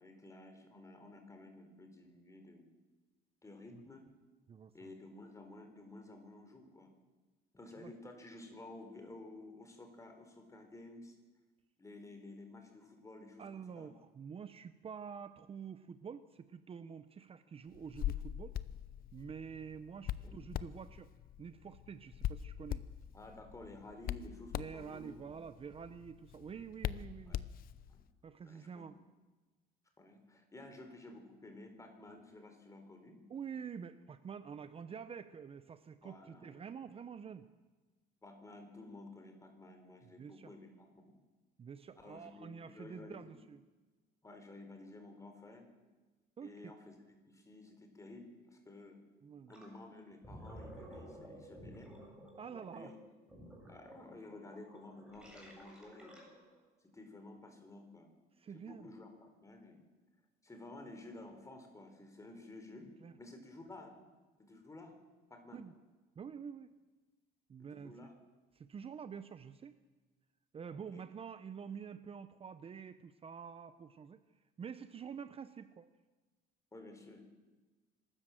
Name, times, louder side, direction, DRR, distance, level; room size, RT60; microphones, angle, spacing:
voice 1, 0.0-2.6 3.4-4.1 4.7-6.9 7.5-11.2 11.8-13.9 20.2-20.4 23.1-25.4 27.3-27.4 27.9-28.0 28.4-29.0 30.0-33.2 36.0-36.6 38.2-41.1 42.0-43.3 44.2-45.7 46.4-49.0 49.5-51.9 52.7-53.0 53.7-56.3 56.9-58.1 58.5-59.8 60.4-62.9 63.2-63.9 64.4-64.9 65.3-65.6 67.7-68.1 70.6-71.1 76.7-77.2, left 2 dB, 20° left, 4 dB, 4.4 m, -53 dB
voice 2, 4.5-4.9 7.8-7.9 13.4-18.5 19.1-21.1 21.4-22.8 24.5-27.5 28.2-29.0 33.3-37.5 40.2-40.5 41.6-43.6 46.4-46.7 49.2-49.5 52.4-52.9 58.4-58.9 63.0-63.1 65.5-65.7 66.2-66.7 67.5-67.9 68.5-69.8 70.5-74.2 74.6-75.9, right 7 dB, 35° right, 12 dB, 0.8 m, -47 dB
Hands, 17.7-28.0, left 11 dB, 60° left, 0.7 m, -42 dB
Gurgling, 49.5-49.7 50.1-56.6, equal, 5° right, 7.8 m, -53 dB
25.5 x 13.0 x 7.7 m, 1.2 s
cardioid pair, 110°, 17 cm